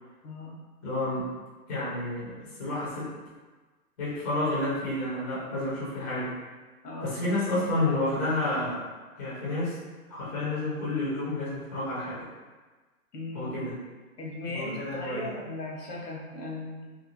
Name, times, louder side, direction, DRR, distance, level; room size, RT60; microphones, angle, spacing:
voice 1, 0.8-1.3 1.7-3.1 4.0-6.3 7.0-8.8 9.2-9.8 10.1-12.3 13.3-13.7 14.5-15.2, left 2 dB, 15° left, -9 dB, 0.6 m, -30 dB
voice 2, 6.8-7.2 13.1-13.5 14.2-17.0, left 2 dB, 85° left, -2 dB, 1.0 m, -37 dB
2.7 x 2.2 x 3.0 m, 1.3 s
hypercardioid pair, 145°, 46 cm